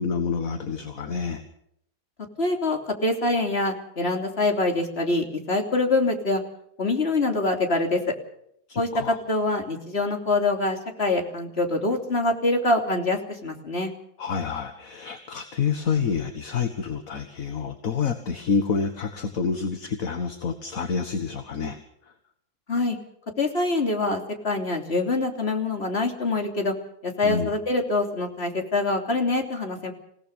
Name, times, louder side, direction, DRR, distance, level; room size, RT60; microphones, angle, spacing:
voice 1, 0.0-1.4 8.7-9.2 14.2-21.8 27.2-27.5, left 5 dB, 60° left, 7 dB, 1.9 m, -28 dB
voice 2, 2.4-6.4 6.8-8.1 8.8-13.9 22.7-23.0 23.4-26.7 27.0-29.9, left 2 dB, 40° left, 3 dB, 3.4 m, -25 dB
27.5 x 17.5 x 5.4 m, 0.72 s
omnidirectional pair, 1.7 m